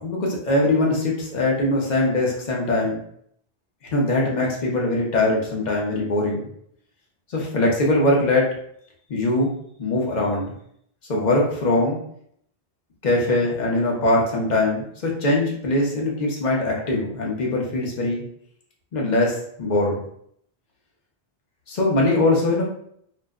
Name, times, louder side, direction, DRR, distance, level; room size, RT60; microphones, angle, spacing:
voice 1, 0.0-3.0 3.9-6.5 7.3-8.5 9.1-9.5 9.8-10.5 11.1-12.0 13.0-18.2 18.9-20.0 21.7-22.6, left 2 dB, 45° left, -2 dB, 0.8 m, -22 dB
2.5 x 2.1 x 3.5 m, 0.68 s
omnidirectional pair, 1.1 m